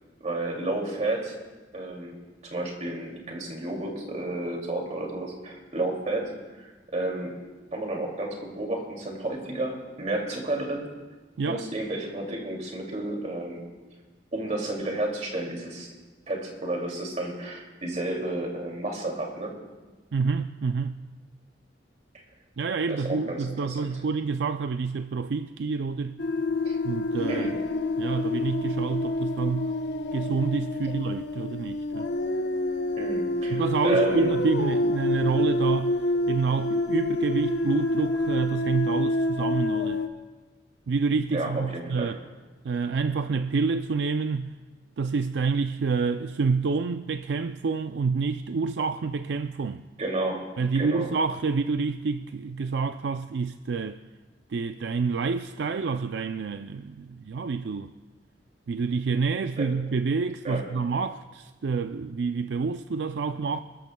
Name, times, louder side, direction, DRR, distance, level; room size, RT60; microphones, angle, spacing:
voice 1, 0.2-1.3 1.7-2.2 2.4-6.7 6.9-7.4 7.7-10.9 11.4-13.7 14.3-15.9 16.3-19.6 22.9-23.8 26.6-26.8 27.3-27.6 33.0-34.3 41.3-42.2 50.0-50.5 50.7-51.1 59.6-59.7 60.4-60.7, right 2 dB, 40° right, 2.5 m, -31 dB
voice 2, 20.1-21.0 22.6-26.2 26.8-27.5 28.0-29.7 30.1-32.1 33.5-36.0 36.3-40.0 40.9-42.2 42.6-44.5 45.0-49.8 50.6-54.0 54.5-57.9 58.7-63.6, right 4 dB, 75° right, 0.4 m, -28 dB
sound 1, 26.2-40.1, left 1 dB, 70° left, 0.9 m, -27 dB
28.5 x 13.5 x 2.3 m
head